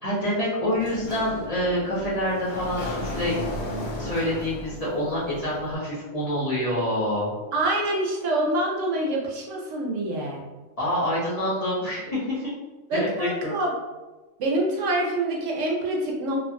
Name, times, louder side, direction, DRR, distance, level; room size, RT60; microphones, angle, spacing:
voice 1, 0.0-3.4 4.0-7.3 10.8-12.5 12.9-13.5, equal, 35° left, -9 dB, 0.8 m, -27 dB
Sliding door, 0.7-5.7, left 1 dB, 70° left, 0.4 m, -34 dB
voice 2, 7.5-10.4 12.9-13.7 14.4-16.4, right 1 dB, 75° right, -1 dB, 0.9 m, -26 dB
2.7 x 2.5 x 2.6 m, 1.1 s
omnidirectional pair, 1.3 m